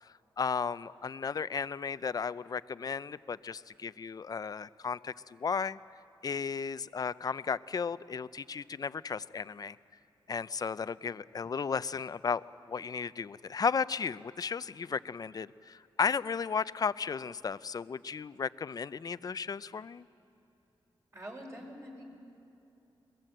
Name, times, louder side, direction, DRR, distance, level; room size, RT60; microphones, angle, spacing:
voice 1, 0.0-5.8 6.2-9.8 10.3-12.4 12.7-20.1, left 6 dB, 40° left, 16 dB, 0.4 m, -34 dB
voice 2, 21.1-22.0, equal, 30° right, 1 dB, 4.4 m, -45 dB
22.5 x 21.5 x 7.8 m, 2.9 s
wide cardioid pair, 110°, 9 cm